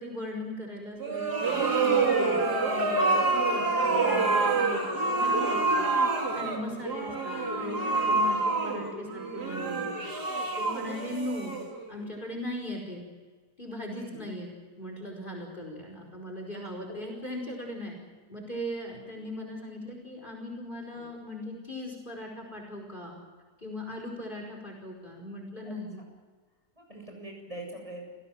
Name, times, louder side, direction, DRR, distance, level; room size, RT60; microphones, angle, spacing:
voice 1, 0.0-5.9 6.3-9.9 10.6-11.6 11.9-13.0 13.6-14.5 14.8-18.0 18.3-23.2 23.6-26.0, left 1 dB, 30° left, 1 dB, 5.2 m, -39 dB
sound 1, 1.0-12.0, right 3 dB, 75° right, 3.9 m, -27 dB
voice 2, 1.8-2.2 7.1-7.2 8.0-8.3 10.6-11.1 13.9-14.2 16.9-17.0 20.9-21.1 25.7-25.8 26.8-28.1, right 1 dB, 20° right, 1 dB, 7.3 m, -44 dB
29.5 x 17.5 x 7.7 m, 1.5 s
omnidirectional pair, 1.7 m